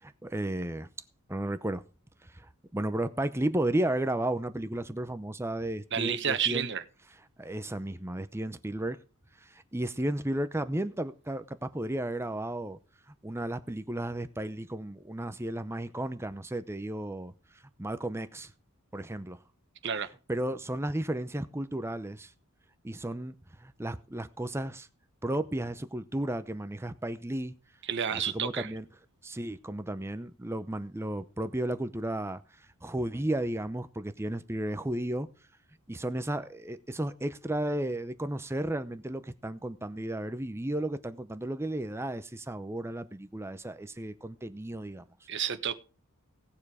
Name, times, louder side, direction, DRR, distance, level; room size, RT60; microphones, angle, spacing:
voice 1, 0.0-0.9 1.3-1.8 2.2-6.7 7.4-9.0 9.4-12.8 13.2-17.3 17.8-18.5 18.9-19.4 20.3-22.3 22.8-24.9 25.2-27.5 28.1-28.9 29.2-35.3 35.9-45.0, right 1 dB, 10° right, 0.6 m, -33 dB
voice 2, 5.9-6.8 19.8-20.1 27.9-28.7 45.3-45.7, right 7 dB, 55° right, 1.2 m, -30 dB
18.0 x 7.2 x 4.9 m
head